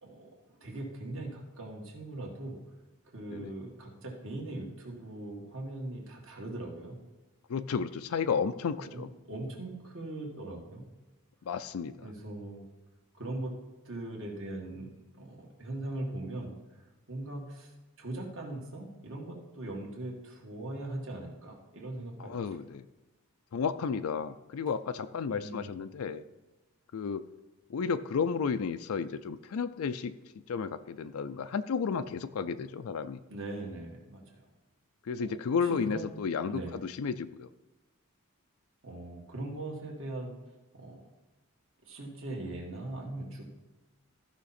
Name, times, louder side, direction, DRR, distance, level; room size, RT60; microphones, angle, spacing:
voice 1, 0.0-2.6 3.1-7.0 8.8-9.0 9.3-10.9 12.0-12.6 13.1-13.5 13.9-14.9 15.2-22.6 25.3-25.8 33.3-34.5 35.2-36.1 36.5-36.7 38.8-40.3 40.7-41.0 41.8-43.4, right 2 dB, 60° right, 0 dB, 1.9 m, -40 dB
voice 2, 7.5-9.1 11.5-12.1 22.2-22.8 23.5-26.2 26.9-27.2 27.7-30.1 30.5-33.2 35.1-37.5, left 6 dB, 75° left, 10 dB, 0.4 m, -32 dB
14.5 x 5.8 x 4.2 m, 1.1 s
head